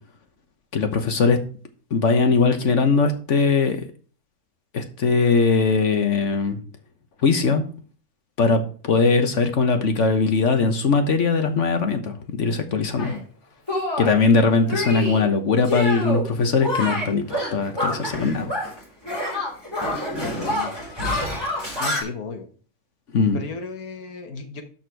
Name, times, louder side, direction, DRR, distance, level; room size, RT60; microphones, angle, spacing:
voice 1, 0.7-1.4 1.9-3.9 4.7-6.6 7.2-7.6 8.4-13.1 14.0-18.5 23.1-23.4, left 4 dB, 55° left, 7 dB, 1.3 m, -20 dB
Shatter, 13.0-13.2 13.7-14.2 14.7-15.2 15.6-16.3 16.6-18.8 19.0-22.0, left 1 dB, 15° left, 3.3 m, -27 dB
voice 2, 20.2-20.8 21.8-22.5 23.2-24.6, left 5 dB, 80° left, 7 dB, 1.6 m, -34 dB
13.0 x 4.4 x 4.6 m, 0.41 s
omnidirectional pair, 1.5 m